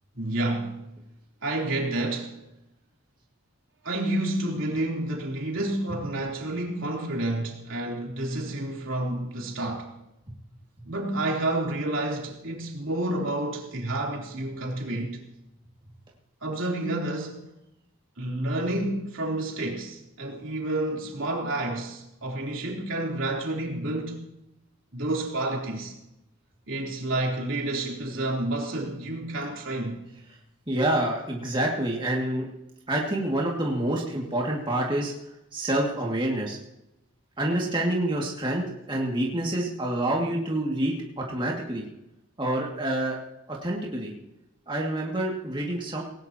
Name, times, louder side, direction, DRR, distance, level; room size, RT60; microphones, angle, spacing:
voice 1, 0.2-0.8 1.4-2.3 3.8-9.9 10.8-15.2 16.4-17.4 18.2-24.3 24.9-25.9 26.7-30.0, right 1 dB, 70° right, 3.5 m, -29 dB
voice 2, 30.7-32.5 32.9-35.1 35.5-36.6 37.4-41.8 42.4-43.2 43.5-44.1 44.7-46.0, right 1 dB, 20° right, 2.1 m, -27 dB
18.5 x 18.5 x 2.9 m
head